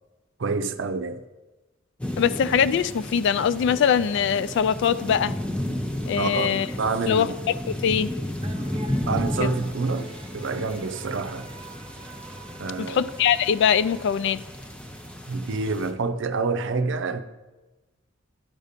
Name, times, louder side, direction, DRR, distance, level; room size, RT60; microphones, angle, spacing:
voice 1, 0.4-1.2 6.2-7.3 9.0-11.5 12.6-13.1 15.3-17.2, right 4 dB, 65° right, 0.6 m, -28 dB
sound 1, 2.0-15.9, left 1 dB, 5° left, 0.7 m, -33 dB
voice 2, 2.2-5.4 6.1-6.7 7.1-8.1 9.4-9.5 12.9-14.4, left 7 dB, 65° left, 0.3 m, -22 dB
sound 2, 8.4-15.0, right 3 dB, 25° right, 0.6 m, -45 dB
10.5 x 4.1 x 5.1 m
head